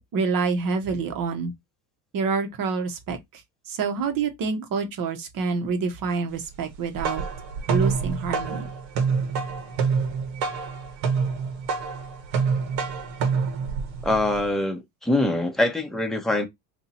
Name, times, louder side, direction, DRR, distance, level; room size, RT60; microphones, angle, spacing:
voice 1, 0.0-1.5 2.1-3.4 3.7-7.2 7.7-8.7, right 5 dB, 45° right, 1.1 m, -27 dB
sound 1, 6.7-14.5, right 5 dB, 65° right, 1.3 m, -27 dB
voice 2, 14.0-16.5, left 2 dB, ahead, 0.8 m, -24 dB
2.9 x 2.7 x 4.1 m
supercardioid pair, 95°, 49 cm